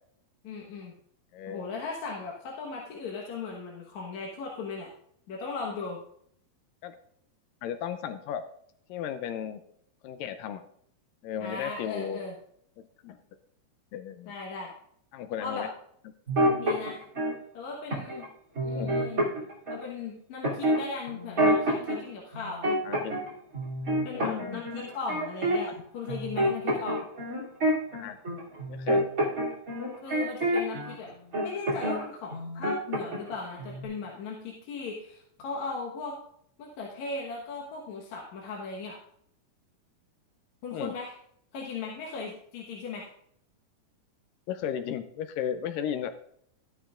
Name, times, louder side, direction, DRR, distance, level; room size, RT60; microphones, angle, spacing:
voice 1, 0.4-0.9 1.5-4.9 5.3-6.0 11.4-12.3 14.3-14.7 15.4-15.7 16.6-17.0 17.5-18.3 18.6-19.2 19.7-22.6 24.0-27.1 30.0-31.1 31.4-36.2 36.6-39.0 40.6-41.1 41.5-43.1, left 4 dB, 60° left, -2 dB, 2.3 m, -37 dB
voice 2, 1.3-1.7 6.8-7.0 7.6-8.4 8.9-9.6 10.0-10.6 11.2-12.2 12.8-13.2 13.9-14.3 15.1-15.7 18.7-19.0 22.8-23.2 24.1-24.6 27.9-28.2 28.7-29.0 40.7-40.9 44.5-46.1, left 9 dB, 80° left, 9 dB, 2.1 m, -35 dB
sound 1, 16.3-17.3 17.9-18.2 18.5-19.8 20.4-22.0 22.3-23.3 23.5-25.8 26.1-30.9 31.3-32.0 32.3-33.3 33.6-33.8, right 1 dB, 25° right, 3.0 m, -27 dB
13.0 x 11.0 x 2.5 m, 0.67 s
omnidirectional pair, 4.2 m